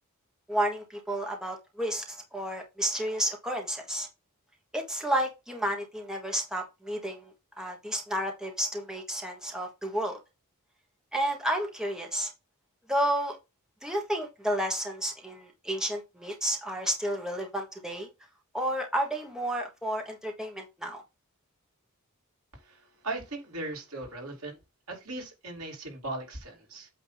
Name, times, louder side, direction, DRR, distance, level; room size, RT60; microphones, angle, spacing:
voice 1, 0.5-4.1 4.7-10.2 11.1-12.3 12.9-13.4 13.8-18.1 18.5-21.0, right 1 dB, 5° right, 1.3 m, -31 dB
voice 2, 22.6-24.6 24.9-26.9, right 2 dB, 80° right, 2.7 m, -38 dB
8.4 x 2.9 x 5.6 m
head